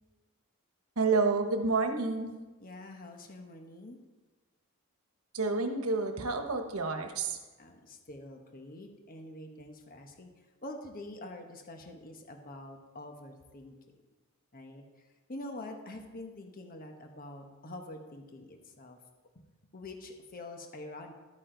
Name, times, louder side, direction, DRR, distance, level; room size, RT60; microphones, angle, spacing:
voice 1, 1.0-2.3 5.3-7.4, right 3 dB, 85° right, 6 dB, 1.1 m, -29 dB
voice 2, 2.6-4.0 7.6-10.3 10.6-13.8 14.5-19.0 19.7-21.1, left 1 dB, 40° left, 4 dB, 1.2 m, -46 dB
12.0 x 9.2 x 3.9 m, 1.2 s
head